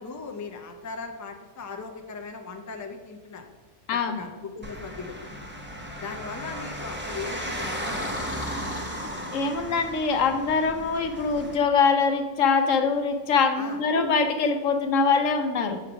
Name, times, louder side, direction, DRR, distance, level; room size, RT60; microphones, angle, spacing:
voice 1, 0.0-3.4 3.9-5.5 6.0-8.4 13.5-13.8, left 4 dB, 25° left, 4 dB, 0.4 m, -38 dB
voice 2, 3.9-4.2 9.3-15.8, left 5 dB, 85° left, 7 dB, 1.1 m, -23 dB
sound 1, 4.6-11.5, equal, 10° right, 0.7 m, -35 dB
sound 2, 7.6-9.9, left 3 dB, 50° left, 1.2 m, -41 dB
8.1 x 3.3 x 5.9 m, 1.3 s
omnidirectional pair, 1.3 m